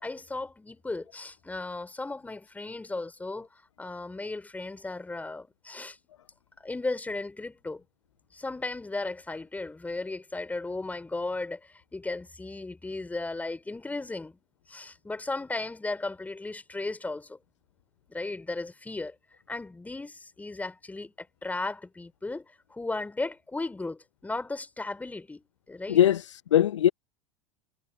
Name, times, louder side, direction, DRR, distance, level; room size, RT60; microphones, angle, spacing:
voice 1, 0.0-6.0 6.6-7.8 8.3-14.4 14.7-17.4 18.1-19.2 19.5-26.0, left 2 dB, 10° left, 4.6 m, -36 dB
voice 2, 25.9-26.9, left 11 dB, 75° left, 0.4 m, -21 dB
figure-of-eight pair, 80°, 16 cm